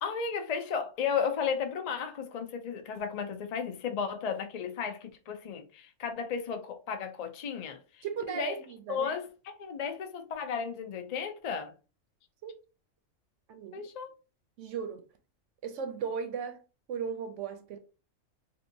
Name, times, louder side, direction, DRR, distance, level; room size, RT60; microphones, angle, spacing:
voice 1, 0.0-8.6 8.9-11.7 13.7-14.1, left 6 dB, 65° left, 0.4 m, -34 dB
voice 2, 8.0-9.1 12.4-12.6 13.5-13.8 14.6-15.0 15.6-16.6 16.9-17.8, right 6 dB, 70° right, 0.9 m, -36 dB
3.5 x 2.7 x 2.6 m
omnidirectional pair, 1.4 m